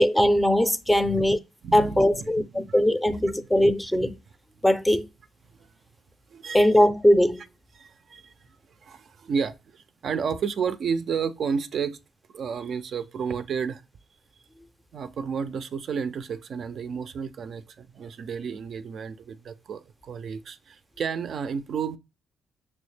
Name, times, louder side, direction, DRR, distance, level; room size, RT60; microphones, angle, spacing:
voice 1, 0.0-1.4 1.7-4.2 4.6-5.1 6.5-7.4, equal, 5° left, 0.4 m, -20 dB
voice 2, 1.6-2.8 5.6-5.7 6.3-6.7 7.8-8.5 8.8-12.0 12.3-13.8 14.9-22.0, right 6 dB, 60° right, 0.3 m, -32 dB
6.1 x 2.0 x 3.2 m
cardioid pair, 90°, 0 cm